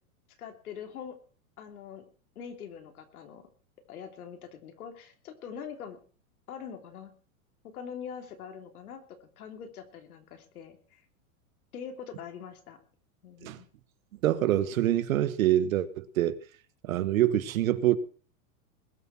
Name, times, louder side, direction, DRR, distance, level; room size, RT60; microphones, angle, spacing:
voice 1, 0.4-1.2 1.6-2.0 2.3-3.4 3.9-6.0 6.5-7.1 7.6-11.0 11.7-12.8 13.2-13.7, left 7 dB, 85° left, 3.3 m, -43 dB
voice 2, 14.2-16.4 16.8-18.0, right 13 dB, 70° right, 1.5 m, -25 dB
21.0 x 7.5 x 6.0 m
supercardioid pair, 175°, 43 cm